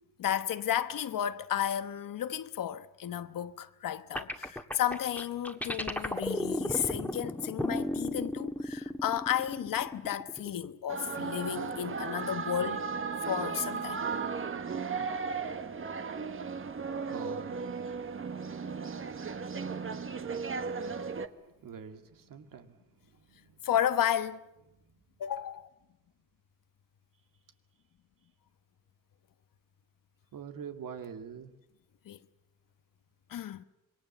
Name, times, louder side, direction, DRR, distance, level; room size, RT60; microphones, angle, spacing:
voice 1, 0.2-12.8 13.3-14.1 23.6-24.5 25.2-25.7 32.0-32.2 33.3-33.6, left 10 dB, 85° left, 1.1 m, -33 dB
sound 1, 4.2-10.7, left 1 dB, 5° left, 1.6 m, -34 dB
sound 2, 10.9-21.3, right 5 dB, 40° right, 1.3 m, -35 dB
voice 2, 17.1-17.5 21.6-22.8 23.3-23.4 30.3-31.5, right 7 dB, 85° right, 2.2 m, -44 dB
26.5 x 22.5 x 7.3 m
wide cardioid pair, 115°, 32 cm